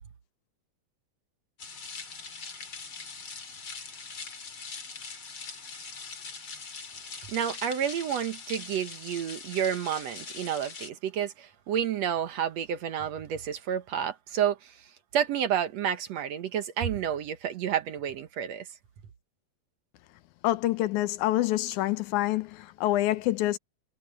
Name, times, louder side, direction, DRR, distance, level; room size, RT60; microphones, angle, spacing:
sound 1, 1.6-10.9, left 5 dB, 40° left, 3.7 m, -42 dB
voice 1, 7.3-14.9 15.1-18.7, right 9 dB, 65° right, 2.0 m, -30 dB
voice 2, 20.4-23.6, left 15 dB, 80° left, 2.1 m, -26 dB
omnidirectional pair, 3.6 m